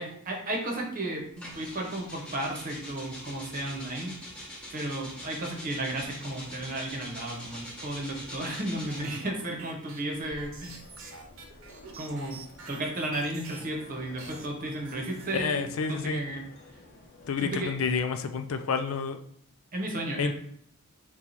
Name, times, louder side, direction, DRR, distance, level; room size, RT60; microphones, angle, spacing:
voice 1, 0.0-4.1 4.7-10.8 12.0-12.4 12.7-16.5 17.4-17.7 19.7-20.3, right 1 dB, 40° right, 1 dB, 0.9 m, -34 dB
sound 1, 1.4-9.2 10.1-12.6, equal, 5° left, 1.0 m, -44 dB
sound 2, 8.9-13.9 14.2-15.8, right 4 dB, 70° right, 0.8 m, -48 dB
sound 3, 10.5-18.0, left 2 dB, 50° left, 0.8 m, -53 dB
voice 2, 15.3-16.3 17.3-19.2 20.2-20.3, left 5 dB, 70° left, 7 dB, 0.4 m, -29 dB
4.4 x 2.3 x 4.0 m, 0.65 s
head